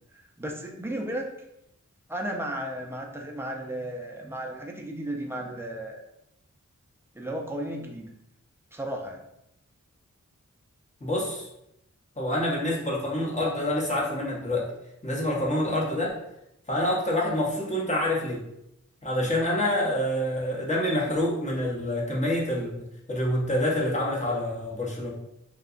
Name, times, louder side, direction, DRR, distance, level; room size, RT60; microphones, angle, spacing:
voice 1, 0.1-1.3 2.1-6.0 7.1-8.1 8.7-9.2 15.8-16.0, right 1 dB, 10° right, 1 dB, 0.4 m, -34 dB
voice 2, 11.0-11.5 12.2-14.7 15.0-16.1 16.7-18.4 19.0-22.7 23.1-25.1, left 1 dB, 25° left, -5 dB, 0.8 m, -27 dB
2.7 x 2.2 x 2.4 m, 0.83 s
wide cardioid pair, 70°, 31 cm